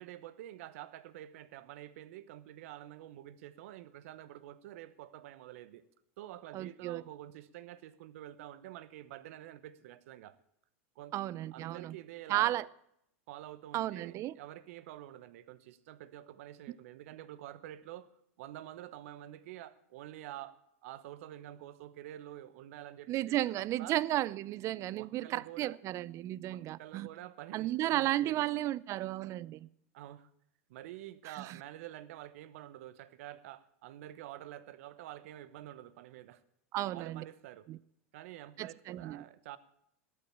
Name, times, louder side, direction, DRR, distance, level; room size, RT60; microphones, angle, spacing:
voice 1, 0.0-5.8 6.2-10.4 11.0-11.1 11.5-12.5 13.3-18.1 18.4-24.0 24.9-25.8 26.5-28.5 29.9-30.3 30.7-36.4 36.9-37.7 38.1-39.6, right 13 dB, 70° right, 1.0 m, -48 dB
voice 2, 6.5-7.0 11.1-12.0 12.3-12.7 13.7-14.3 23.1-27.1 27.5-29.7 31.3-31.6 36.7-37.2 37.7-37.8 38.6-39.2, right 14 dB, 40° right, 0.5 m, -34 dB
12.5 x 8.6 x 8.6 m
supercardioid pair, 115°, 8 cm